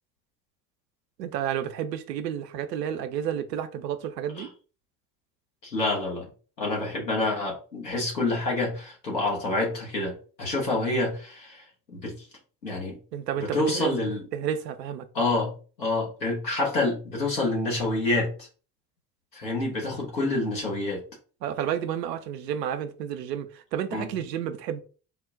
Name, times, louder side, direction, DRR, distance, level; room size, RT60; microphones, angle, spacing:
voice 1, 1.2-4.5 13.1-13.9 14.3-15.1 20.2-20.3 21.4-24.8, right 9 dB, 80° right, 0.6 m, -31 dB
voice 2, 5.6-6.3 6.6-12.3 12.6-13.0 13.4-14.2 15.1-18.5 19.3-21.0 23.9-24.1, left 2 dB, 90° left, 1.1 m, -28 dB
4.2 x 2.1 x 3.6 m
figure-of-eight pair, 50°, 49 cm